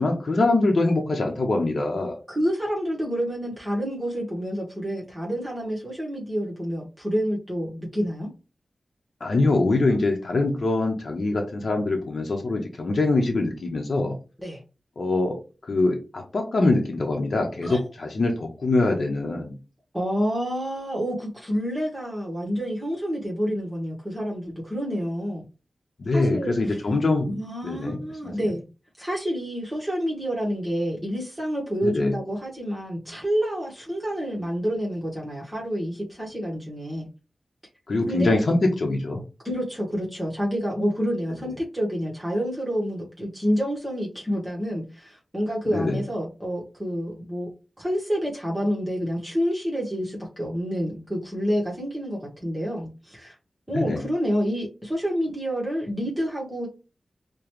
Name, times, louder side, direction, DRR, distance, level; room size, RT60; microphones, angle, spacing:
voice 1, 0.0-2.2 9.2-14.1 15.0-15.4 15.6-19.5 26.0-27.4 27.6-28.3 31.8-32.1 37.9-39.2 45.7-46.0 53.7-54.0, left 2 dB, 70° left, 1 dB, 0.8 m, -23 dB
voice 2, 2.3-8.3 14.4-14.6 17.6-17.9 19.9-25.4 26.1-26.8 27.2-28.6 29.0-37.1 38.1-38.3 39.4-47.5 47.8-53.4 53.7-56.7, equal, 15° right, -4 dB, 1.2 m, -28 dB
4.9 x 2.2 x 3.0 m, 0.31 s
wide cardioid pair, 60°, 0 cm